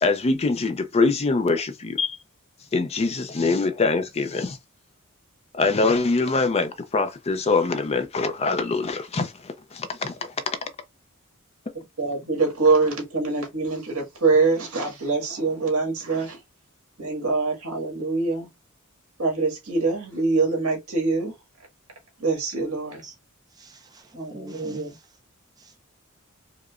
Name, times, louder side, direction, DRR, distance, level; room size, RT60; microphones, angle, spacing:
voice 1, 0.0-2.2 2.7-4.6 5.6-9.3 9.7-10.1, left 3 dB, 30° left, 0.4 m, -23 dB
voice 2, 12.0-16.4 17.0-18.5 19.2-21.3 22.2-23.0 24.1-25.0, right 3 dB, 75° right, 1.7 m, -24 dB
voice 3, 23.5-25.0 25.6-25.8, right 2 dB, 20° right, 0.6 m, -44 dB
4.8 x 2.1 x 2.4 m
head